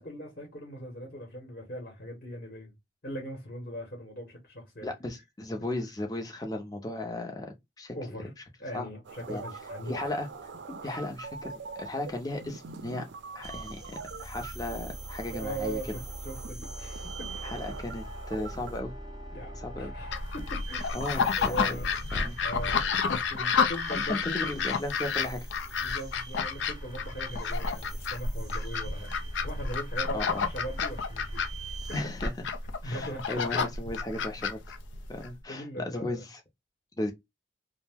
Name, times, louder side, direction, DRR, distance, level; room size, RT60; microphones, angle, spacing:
voice 1, 0.0-2.8 3.0-4.9 7.9-8.3 8.6-10.1 10.8-11.0 15.4-17.5 19.3-21.0 21.4-21.9 22.4-24.6 25.8-29.1 29.4-31.8 32.2-32.3 32.8-33.6 35.5-36.2, equal, 50° left, 1.0 m, -40 dB
voice 2, 4.8-8.0 8.7-8.9 9.3-9.4 9.9-10.3 10.8-13.1 13.3-15.8 17.4-18.9 19.6-19.9 20.9-21.8 22.1-22.4 23.9-25.5 30.1-30.5 31.9-32.3 32.8-34.6 35.1-36.4 37.0-37.1, left 1 dB, 20° left, 0.5 m, -35 dB
sound 1, 9.0-18.8, right 4 dB, 80° right, 0.4 m, -44 dB
sound 2, 13.4-32.0, right 1 dB, 25° right, 0.6 m, -43 dB
sound 3, 20.1-35.3, left 5 dB, 90° left, 0.4 m, -30 dB
2.6 x 2.1 x 3.3 m
head